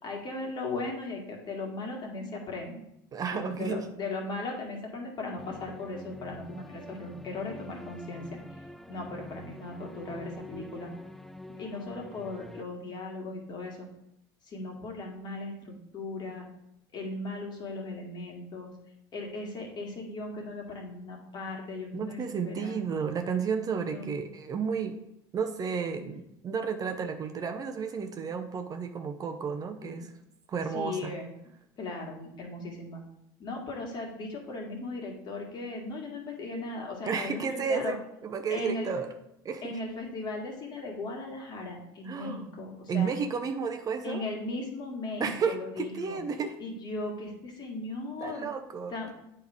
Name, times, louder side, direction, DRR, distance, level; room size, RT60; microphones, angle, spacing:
voice 1, 0.0-2.8 3.3-8.4 8.9-10.9 11.6-13.9 14.5-16.5 16.9-18.7 19.1-22.8 23.7-24.1 29.8-30.1 30.7-31.3 31.8-33.0 33.4-38.0 38.5-38.9 39.6-43.1 44.0-46.2 46.6-48.5 48.9-49.1, left 2 dB, 40° left, 0 dB, 2.0 m, -37 dB
voice 2, 3.1-3.9 21.9-25.0 25.3-30.1 30.5-31.1 37.0-39.1 39.4-39.8 42.0-42.5 42.9-44.2 45.2-46.6 48.2-49.1, right 6 dB, 35° right, 6 dB, 0.7 m, -32 dB
sound 1, 5.4-12.6, left 1 dB, ahead, 0.4 m, -46 dB
8.2 x 3.3 x 5.0 m, 0.81 s
supercardioid pair, 95°, 11 cm